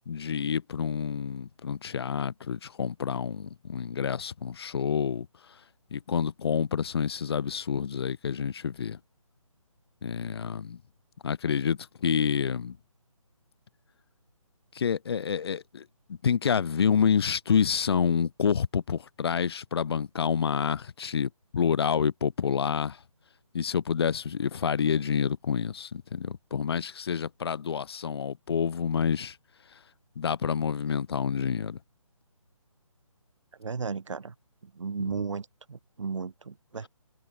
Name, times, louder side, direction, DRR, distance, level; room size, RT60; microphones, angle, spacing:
voice 1, 0.1-5.3 5.9-9.0 10.0-10.8 11.2-12.8 14.7-23.0 23.5-29.4 30.2-31.8, left 7 dB, 45° left, 2.9 m, -28 dB
voice 2, 33.6-34.3 34.6-36.9, right 5 dB, 60° right, 4.0 m, -35 dB
figure-of-eight pair, 150°, 18 cm